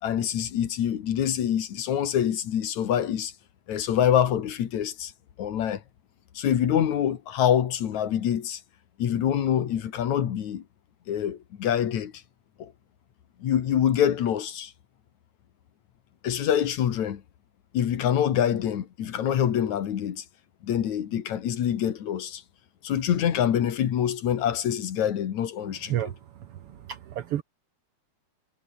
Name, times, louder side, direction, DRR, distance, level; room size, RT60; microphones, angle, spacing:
voice 1, 0.0-3.3 3.7-5.1 5.4-5.8 6.3-8.6 9.0-10.6 11.1-12.1 12.6-12.7 13.4-14.7 16.2-17.2 17.7-20.2 20.6-22.4 22.8-26.1, left 9 dB, 65° left, 3.0 m, -25 dB
voice 2, 26.9-27.4, right 11 dB, 65° right, 1.5 m, -29 dB
omnidirectional pair, 3.7 m